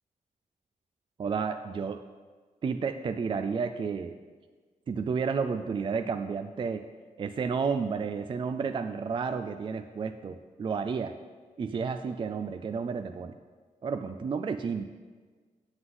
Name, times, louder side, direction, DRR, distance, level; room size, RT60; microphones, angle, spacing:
voice 1, 1.2-2.0 2.6-4.2 4.9-6.8 7.2-11.1 11.6-13.3 13.8-14.9, right 5 dB, 35° right, 8 dB, 0.4 m, -31 dB
9.5 x 7.8 x 3.9 m, 1.5 s
wide cardioid pair, 140°, 14 cm